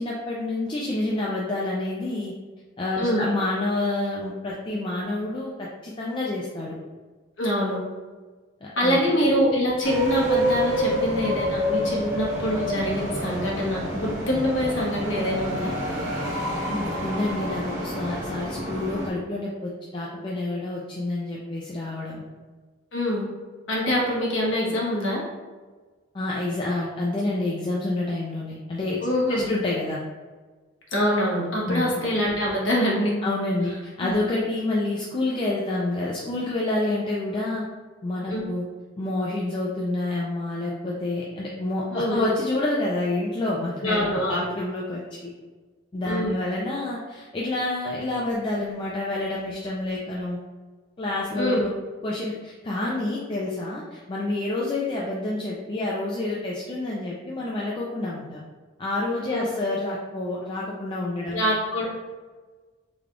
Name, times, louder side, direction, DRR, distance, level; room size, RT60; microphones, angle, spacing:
voice 1, 0.0-2.3 2.8-6.8 8.6-9.1 16.7-22.2 26.1-30.0 31.7-32.0 33.2-37.6 38.0-38.6 39.0-45.3 45.9-50.4 51.0-51.7 52.0-58.4 58.8-61.4, left 2 dB, 25° left, -5 dB, 0.3 m, -28 dB
voice 2, 7.4-7.8 8.8-15.7 22.9-23.2 23.7-25.2 29.0-29.4 30.9-33.2 34.0-34.1 38.3-38.4 41.9-42.3 43.8-44.5 46.0-46.3 51.3-51.6 59.3-59.4 61.3-61.9, equal, 70° left, -4 dB, 1.1 m, -24 dB
sound 1, 9.8-19.1, equal, 65° right, 1.0 m, -27 dB
3.3 x 2.3 x 3.7 m, 1.4 s
head